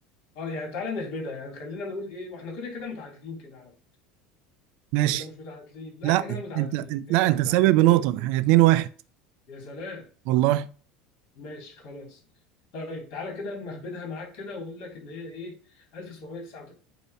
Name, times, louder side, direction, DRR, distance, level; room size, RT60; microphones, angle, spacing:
voice 1, 0.3-3.7 5.0-8.2 9.5-10.1 11.3-12.2 12.7-16.7, left 3 dB, 60° left, 3.2 m, -37 dB
voice 2, 4.9-5.2 6.0-8.9 10.3-10.7, right 16 dB, 60° right, 0.5 m, -21 dB
8.4 x 2.9 x 5.7 m
supercardioid pair, 145°, 2 cm